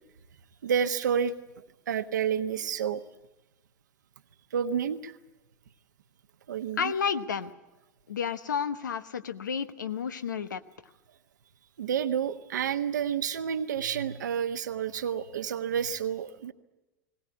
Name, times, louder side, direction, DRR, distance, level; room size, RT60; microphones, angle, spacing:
voice 1, 0.6-1.3 1.9-3.0 4.5-5.2 6.5-6.9 11.8-16.5, right 8 dB, 70° right, 9 dB, 1.3 m, -29 dB
voice 2, 6.8-7.5 8.1-10.6, left 7 dB, 75° left, 11 dB, 1.1 m, -31 dB
21.0 x 18.0 x 9.6 m, 1.0 s
figure-of-eight pair, 85°, 10 cm